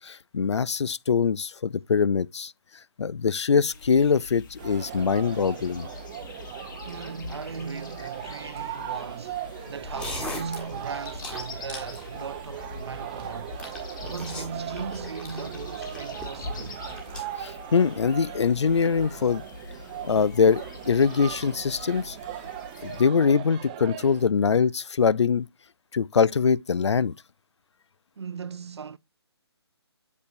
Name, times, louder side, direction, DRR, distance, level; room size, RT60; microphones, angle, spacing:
voice 1, 0.0-2.5 3.0-5.9 17.4-19.4 20.0-22.2 22.8-25.5 25.9-27.1, left 6 dB, 85° left, 0.5 m, -23 dB
sound 1, 3.7-23.0, left 4 dB, 45° left, 1.9 m, -44 dB
sound 2, 4.6-24.3, right 11 dB, 15° right, 0.7 m, -39 dB
voice 2, 6.8-13.6 14.0-16.9 28.2-29.0, right 5 dB, 70° right, 0.6 m, -38 dB
sound 3, 9.8-17.2, left 1 dB, 5° left, 1.4 m, -40 dB
8.2 x 6.8 x 2.6 m
hypercardioid pair, 160°, 14 cm